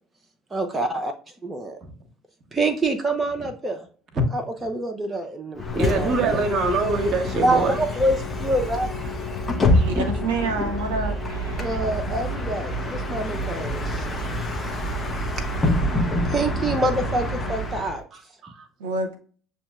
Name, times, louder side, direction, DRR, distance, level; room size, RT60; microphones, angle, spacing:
voice 1, 0.5-1.1 1.4-1.8 2.5-3.9 4.3-6.4 7.4-8.9 11.6-14.0 15.4-15.5 16.2-18.0, right 1 dB, 15° right, 4 dB, 0.5 m, -26 dB
Bus, 5.6-18.0, left 1 dB, 20° left, 0.8 m, -26 dB
voice 2, 5.7-7.8 9.7-9.9 15.9-16.1 18.1-18.7, right 3 dB, 40° right, 7 dB, 0.9 m, -25 dB
voice 3, 9.8-11.8 18.8-19.2, right 3 dB, 65° right, 3 dB, 0.6 m, -28 dB
7.0 x 2.7 x 2.3 m, 0.42 s
figure-of-eight pair, 60°, 0 cm